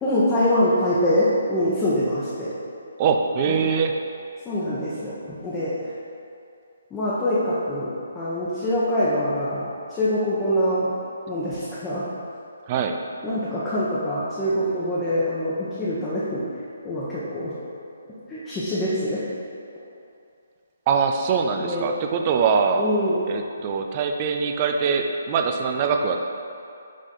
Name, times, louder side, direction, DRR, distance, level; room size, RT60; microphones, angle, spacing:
voice 1, 0.0-2.5 3.5-3.6 4.4-5.9 6.9-10.9 11.3-12.1 13.2-16.5 16.8-17.5 18.3-19.2 21.6-21.9 22.7-23.2, equal, 15° left, -11 dB, 1.0 m, -24 dB
voice 2, 3.0-3.9 12.7-12.9 20.9-22.9 23.3-26.2, right 6 dB, 30° right, 4 dB, 0.5 m, -23 dB
6.3 x 4.0 x 3.8 m, 2.6 s
figure-of-eight pair, 145°, 0 cm